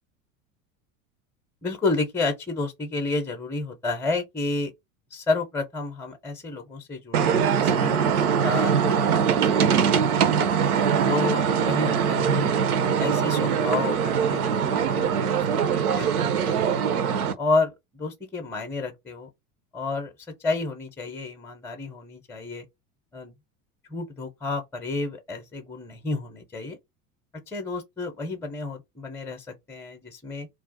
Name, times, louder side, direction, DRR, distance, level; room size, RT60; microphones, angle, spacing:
voice 1, 1.6-4.7 5.1-8.1 8.4-10.5 11.0-12.5 13.0-16.7 17.4-19.3 19.7-20.1 20.4-22.7 23.1-23.3 23.9-26.8 27.5-30.5, left 3 dB, 5° left, 0.5 m, -31 dB
sound 1, 7.1-17.3, right 7 dB, 85° right, 0.6 m, -22 dB
2.4 x 2.0 x 3.8 m
hypercardioid pair, 80°, 43 cm